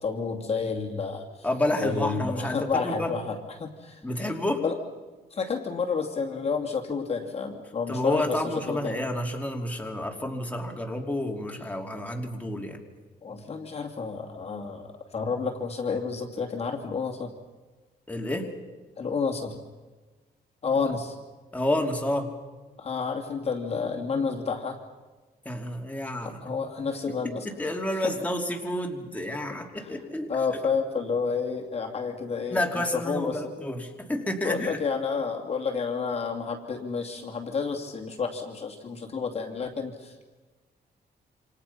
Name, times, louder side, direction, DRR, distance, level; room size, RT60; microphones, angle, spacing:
voice 1, 0.0-1.3 1.8-4.0 4.6-4.8 5.3-9.0 13.2-17.3 19.0-19.6 20.6-21.2 22.8-24.8 26.2-27.5 29.8-29.9 30.3-32.6 33.0-33.4 34.4-40.2, left 5 dB, 35° left, 2 dB, 2.5 m, -30 dB
voice 2, 1.4-3.1 4.0-4.6 7.9-12.8 18.1-18.5 21.5-22.3 25.4-26.5 27.1-27.2 27.4-30.3 32.5-34.8, left 1 dB, 10° left, 2 dB, 2.9 m, -30 dB
28.0 x 27.0 x 5.7 m, 1.3 s
cardioid pair, 135°, 17 cm